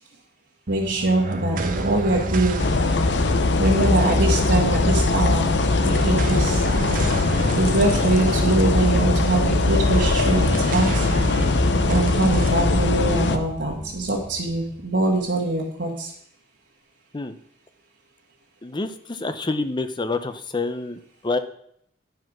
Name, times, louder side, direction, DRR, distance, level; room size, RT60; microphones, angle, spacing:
sound 1, 0.7-15.3, right 1 dB, 50° right, 1.1 m, -27 dB
voice 1, 0.7-2.6 3.6-5.5 5.8-6.6 7.5-11.1 11.9-16.1, right 2 dB, 70° right, -6 dB, 1.6 m, -23 dB
sound 2, 2.6-13.4, left 3 dB, 75° left, 0.7 m, -21 dB
voice 2, 18.6-21.4, left 3 dB, 25° left, 9 dB, 0.6 m, -27 dB
10.5 x 4.8 x 6.0 m, 0.68 s
head